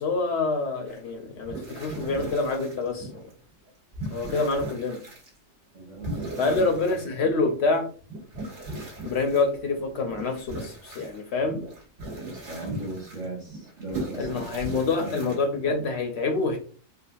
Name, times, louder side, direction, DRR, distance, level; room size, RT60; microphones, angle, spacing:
voice 1, 0.0-3.2 4.1-5.0 6.4-7.9 9.0-11.6 14.1-16.6, left 3 dB, 65° left, 5 dB, 0.8 m, -26 dB
sound 1, 0.9-1.1 1.4-3.4 3.7-5.3 6.0-7.5 8.0-15.9, right 1 dB, 60° right, 1.3 m, -38 dB
voice 2, 5.7-6.7 12.2-14.3 14.6-14.7 15.0-15.4, right 2 dB, 45° right, -1 dB, 0.8 m, -37 dB
3.8 x 2.3 x 2.5 m, 0.40 s
omnidirectional pair, 1.3 m